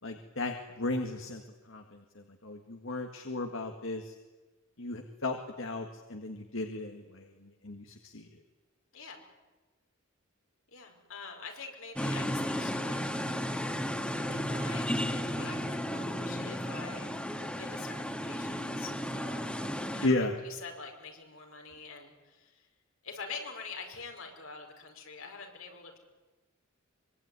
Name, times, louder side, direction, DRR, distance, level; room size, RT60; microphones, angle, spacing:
voice 1, 0.0-1.4 1.7-4.1 4.8-8.3 20.0-20.3, left 2 dB, 65° left, 4 dB, 1.8 m, -35 dB
voice 2, 10.7-13.1 14.0-19.6 19.9-22.7 23.0-26.0, left 4 dB, 85° left, 2 dB, 5.7 m, -46 dB
sound 1, 12.0-20.1, equal, 5° left, 1.9 m, -34 dB
24.5 x 24.0 x 9.6 m, 1.2 s
head